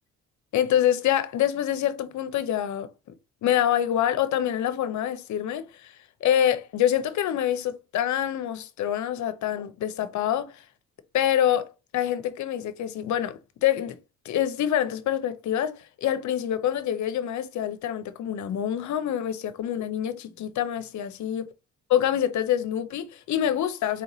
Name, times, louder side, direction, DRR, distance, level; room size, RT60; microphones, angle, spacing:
voice 1, 0.5-2.9 3.4-10.6 11.1-14.0 14.2-21.4 21.9-24.0, left 10 dB, 70° left, 0.7 m, -26 dB
4.5 x 2.5 x 3.0 m
cardioid pair, 90°, 30 cm